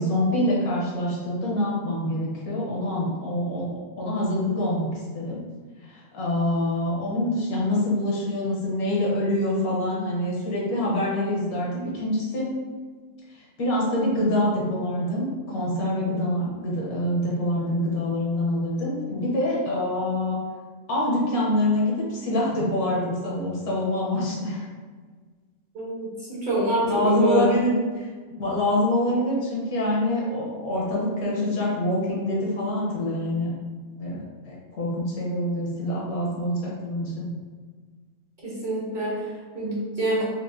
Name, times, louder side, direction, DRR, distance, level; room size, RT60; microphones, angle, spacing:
voice 1, 0.0-3.7 4.0-4.9 5.1-5.4 5.9-12.5 13.3-20.4 20.9-24.7 26.9-33.5 34.0-37.3, left 1 dB, 85° left, -4 dB, 1.4 m, -25 dB
voice 2, 25.7-27.5 38.4-40.2, right 1 dB, 40° right, -8 dB, 0.9 m, -26 dB
4.5 x 2.2 x 2.6 m, 1.5 s
omnidirectional pair, 1.5 m